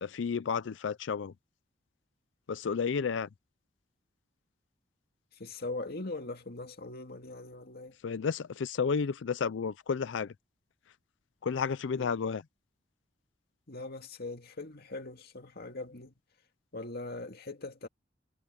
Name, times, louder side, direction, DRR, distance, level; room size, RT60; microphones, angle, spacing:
voice 1, 0.0-1.3 2.5-3.3 8.0-10.3 11.4-12.4, left 6 dB, 75° left, 0.4 m, -31 dB
voice 2, 5.4-8.0 11.9-12.1 13.7-16.1 16.7-17.9, left 2 dB, 55° left, 2.2 m, -41 dB
head